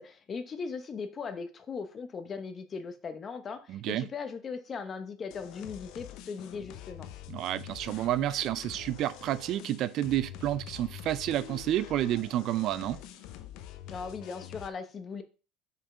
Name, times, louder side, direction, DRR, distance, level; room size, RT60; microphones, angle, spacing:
voice 1, 0.0-7.1 13.9-15.2, left 5 dB, 30° left, 1.0 m, -39 dB
voice 2, 3.7-4.1 7.3-13.0, right 13 dB, 55° right, 0.4 m, -30 dB
sound 1, 5.3-14.7, left 11 dB, 65° left, 0.8 m, -46 dB
5.5 x 5.4 x 4.9 m
supercardioid pair, 120°, 0 cm